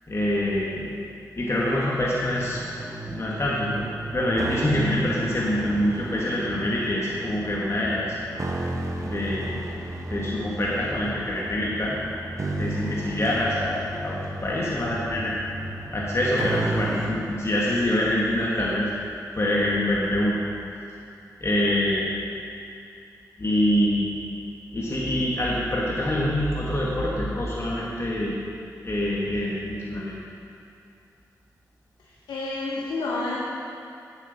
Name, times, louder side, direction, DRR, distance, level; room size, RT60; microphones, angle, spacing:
voice 1, 0.1-0.9 1.4-2.6 3.1-8.2 8.9-9.6 10.1-12.0 12.6-15.3 15.9-18.9 19.4-20.4 21.4-22.1 23.4-24.2 24.7-28.3 28.8-30.1, left 1 dB, 40° left, -5 dB, 1.4 m, -25 dB
sound 1, 2.3-17.1, right 2 dB, 50° right, 0.9 m, -33 dB
voice 2, 32.0-33.4, left 3 dB, 90° left, -4 dB, 0.8 m, -30 dB
8.5 x 7.5 x 4.0 m, 2.6 s
cardioid pair, 40°, 7 cm